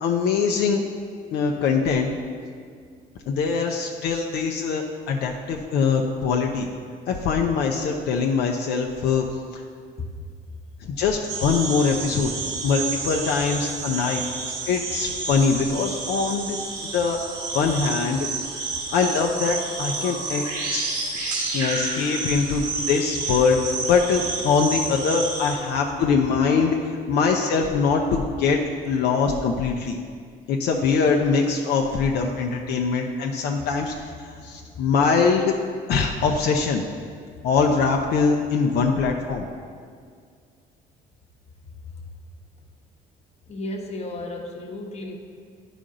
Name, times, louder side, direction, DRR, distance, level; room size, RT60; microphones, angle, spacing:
voice 1, 0.0-0.8 1.3-2.1 3.3-6.7 7.1-9.2 9.5-9.6 10.8-12.3 12.6-14.2 14.7-16.6 16.9-17.2 17.5-18.6 18.9-20.8 21.5-28.6 28.9-30.0 30.5-35.5 35.9-36.8 37.4-39.5, left 5 dB, 75° left, 1 dB, 0.6 m, -23 dB
sound 1, 11.3-25.5, right 3 dB, 90° right, 2.0 m, -30 dB
voice 2, 25.1-25.6 34.4-34.8 41.6-42.1 43.5-45.2, left 2 dB, 40° left, 1 dB, 1.1 m, -36 dB
9.9 x 5.1 x 3.8 m, 2.1 s
cardioid pair, 110°, 17 cm